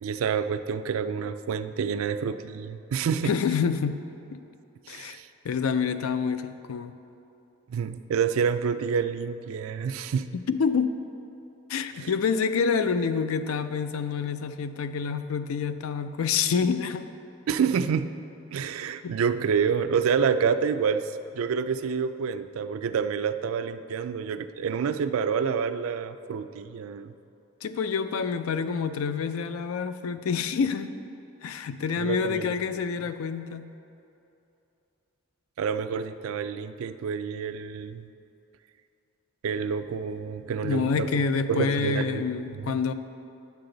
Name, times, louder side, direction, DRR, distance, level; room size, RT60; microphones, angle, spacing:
voice 1, 0.0-3.3 4.9-5.3 7.7-10.3 12.0-12.1 17.5-18.1 18.5-21.0 21.3-27.1 32.0-32.5 35.6-38.1 39.4-41.1 41.5-42.6, right 6 dB, 80° right, 11 dB, 0.3 m, -28 dB
voice 2, 3.2-4.0 4.3-4.4 4.9-5.2 5.4-7.0 10.3-10.9 11.7-17.1 19.0-19.1 27.6-30.9 31.4-33.7 40.6-42.9, left 6 dB, 85° left, 11 dB, 0.4 m, -27 dB
9.5 x 6.7 x 3.8 m, 2.8 s
head